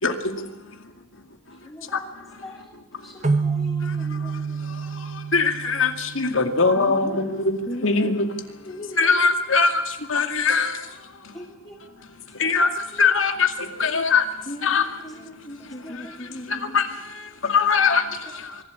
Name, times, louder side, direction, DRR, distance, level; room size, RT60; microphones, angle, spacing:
voice 1, 0.0-0.7 1.8-2.5 2.9-3.4 3.8-7.6 7.8-8.3 9.0-11.4 12.3-14.9 15.9-18.6, left 4 dB, 75° left, 2.3 m, -23 dB
voice 2, 1.6-2.1 2.4-2.8 3.0-4.5 11.3-11.8 15.8-16.2, left 1 dB, 20° left, 2.6 m, -43 dB
sound 1, 3.2-6.8, right 4 dB, 35° right, 0.9 m, -28 dB
voice 3, 6.7-8.1 8.6-9.2 14.5-16.7, equal, 35° left, 1.9 m, -37 dB
24.5 x 12.0 x 9.6 m
head